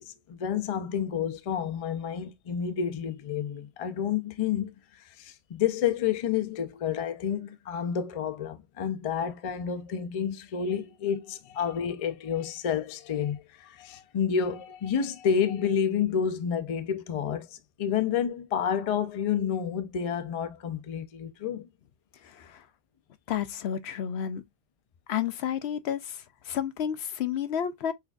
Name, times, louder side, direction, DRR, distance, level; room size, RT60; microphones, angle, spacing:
voice 1, 0.0-21.7, left 8 dB, 45° left, 0.4 m, -30 dB
voice 2, 22.2-22.6 23.3-24.4 25.1-27.9, left 9 dB, 75° left, 0.8 m, -31 dB
5.7 x 2.5 x 2.3 m
omnidirectional pair, 1.1 m